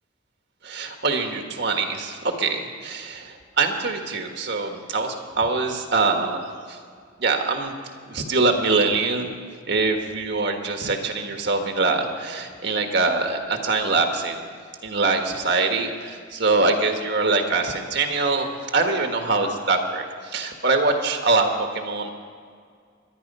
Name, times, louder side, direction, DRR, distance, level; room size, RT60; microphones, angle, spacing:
voice 1, 0.6-6.4 6.7-6.8 7.2-7.7 8.1-9.3 9.7-14.5 14.8-22.1, right 3 dB, 60° right, 4 dB, 1.7 m, -23 dB
23.5 x 10.0 x 5.6 m, 2.1 s
head